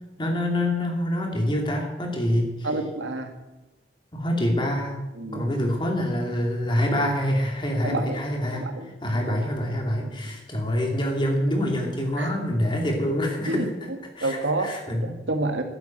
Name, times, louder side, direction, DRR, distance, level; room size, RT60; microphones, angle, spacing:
voice 1, 0.2-2.5 4.1-5.0 5.3-8.6 9.0-13.7 14.2-15.0, left 1 dB, 25° left, 1 dB, 2.6 m, -25 dB
voice 2, 2.6-3.4 5.1-5.5 7.8-8.2 8.5-9.0 10.0-10.2 12.2-12.4 13.5-14.7 15.0-15.6, right 2 dB, 80° right, 5 dB, 1.8 m, -29 dB
12.0 x 8.7 x 8.9 m, 1.0 s
head